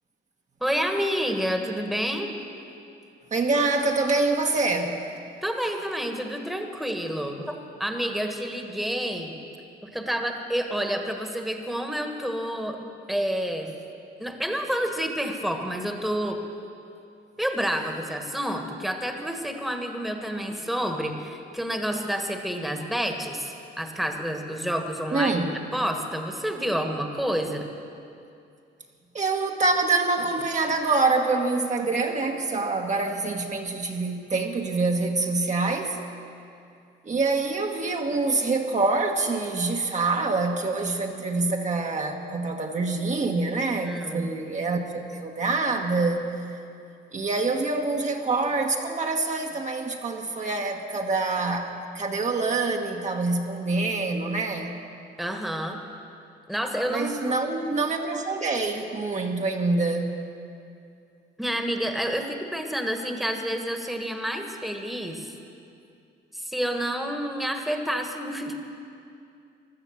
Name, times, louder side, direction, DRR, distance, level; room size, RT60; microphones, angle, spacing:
voice 1, 0.6-2.4 5.4-7.5 7.8-9.3 9.8-12.8 13.1-13.7 14.2-16.4 17.4-25.4 25.7-27.7 43.8-44.3 55.2-55.8 56.5-57.3 61.4-65.3 66.3-68.6, equal, ahead, 4 dB, 1.5 m, -29 dB
voice 2, 3.3-5.0 25.1-25.6 29.1-36.0 37.0-46.3 47.1-54.7 56.9-60.1, right 3 dB, 35° right, 1 dB, 1.3 m, -26 dB
16.0 x 11.5 x 7.3 m, 2.5 s
cardioid pair, 90°, 20 cm